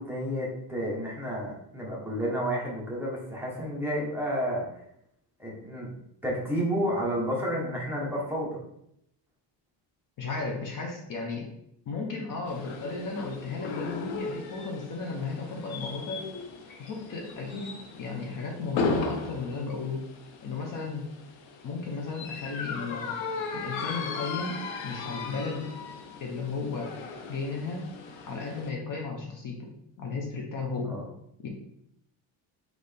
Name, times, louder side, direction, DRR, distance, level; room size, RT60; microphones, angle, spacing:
voice 1, 0.0-4.7 5.4-5.9 6.2-8.6 30.8-31.0, equal, 5° right, -5 dB, 1.0 m, -31 dB
voice 2, 10.2-11.5 11.9-16.3 16.7-20.0 20.4-21.0 21.6-23.1 23.5-25.6 26.2-26.9 27.3-27.9 28.3-29.7 30.0-31.0 31.4-31.5, left 4 dB, 45° left, 1 dB, 0.8 m, -34 dB
sound 1, 12.5-28.7, left 4 dB, 85° left, 0.8 m, -37 dB
4.2 x 3.2 x 3.4 m, 0.75 s
cardioid pair, 150°, 45 cm